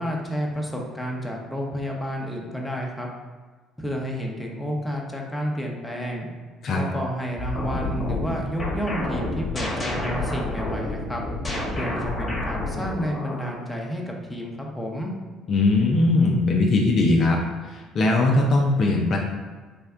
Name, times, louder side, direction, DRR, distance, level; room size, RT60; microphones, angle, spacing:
voice 1, 0.0-3.1 3.8-6.3 6.7-11.2 11.7-15.1, equal, 10° left, -1 dB, 0.7 m, -30 dB
sound 1, 7.4-13.6, left 2 dB, 25° left, 1.1 m, -29 dB
voice 2, 15.5-17.4 17.6-19.2, left 2 dB, 50° left, 0 dB, 0.5 m, -20 dB
3.4 x 2.2 x 3.6 m, 1.3 s
hypercardioid pair, 60°, 0 cm